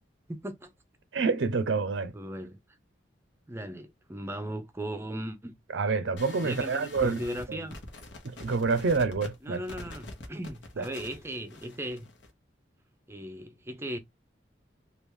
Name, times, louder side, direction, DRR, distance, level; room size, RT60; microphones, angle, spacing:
voice 1, 0.3-0.7 2.1-2.6 3.5-5.6 6.4-7.8 9.4-12.1 13.1-14.0, right 1 dB, 15° right, 0.5 m, -37 dB
voice 2, 1.1-2.1 5.7-7.2 7.5-7.6 8.4-9.6 10.8-10.9, right 4 dB, 80° right, 0.5 m, -27 dB
sound 1, 6.2-12.3, left 2 dB, 75° left, 1.0 m, -45 dB
3.4 x 2.4 x 3.1 m
head